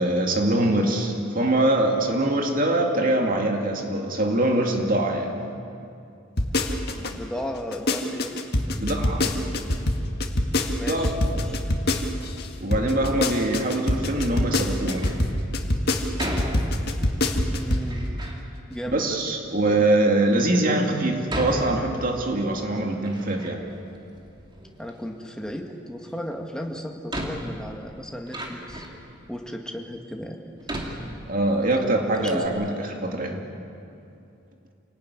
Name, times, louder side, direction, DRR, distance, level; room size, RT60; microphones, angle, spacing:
voice 1, 0.0-5.3 8.8-9.3 10.9-11.4 12.6-15.1 18.9-23.7 31.3-33.4, right 1 dB, 40° right, 2 dB, 2.5 m, -23 dB
sound 1, 6.4-7.1 7.5-12.5 12.7-17.9 18.2-18.3, left 1 dB, 50° left, 2.0 m, -24 dB
voice 2, 7.0-8.3 10.7-11.6 17.5-18.2 18.7-19.2 19.8-19.9 24.8-28.9 29.3-30.4 32.2-32.5, equal, 5° left, 2 dB, 2.0 m, -35 dB
Door, 14.8-15.3 16.2-17.1 17.8-18.4 19.2-19.3 20.0-20.1 21.3-22.4 22.8-23.8 24.1-25.0 26.3-26.4 27.1-29.1 29.7-29.8 30.6-31.7 32.0-32.1 32.3-32.5, equal, 25° right, 2.7 m, -34 dB
27.5 x 18.5 x 9.7 m, 2.6 s
head